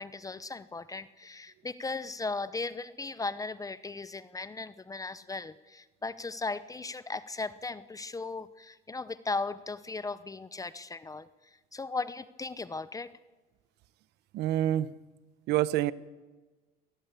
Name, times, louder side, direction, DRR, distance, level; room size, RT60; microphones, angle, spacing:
voice 1, 0.0-13.1, left 3 dB, 20° left, 15 dB, 0.8 m, -37 dB
voice 2, 14.3-14.9 15.5-15.9, right 13 dB, 85° right, 18 dB, 0.9 m, -27 dB
26.0 x 19.5 x 8.3 m, 1.2 s
cardioid pair, 110°, 17 cm